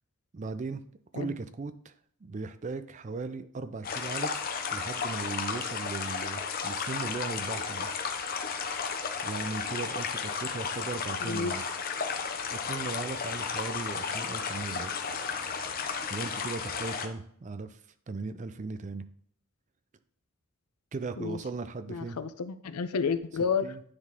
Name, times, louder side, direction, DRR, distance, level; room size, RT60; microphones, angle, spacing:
voice 1, 0.3-0.8 1.1-1.9 2.2-4.4 4.7-7.9 9.2-11.7 12.5-15.0 16.1-17.8 18.1-19.1 20.9-22.2 23.6-23.8, right 3 dB, 35° right, 12 dB, 0.4 m, -37 dB
sound 1, 3.8-17.1, left 5 dB, 40° left, 0.6 m, -33 dB
voice 2, 11.2-11.5 21.2-21.4 21.9-23.7, left 5 dB, 90° left, 12 dB, 0.5 m, -31 dB
9.8 x 4.0 x 3.6 m, 0.64 s
head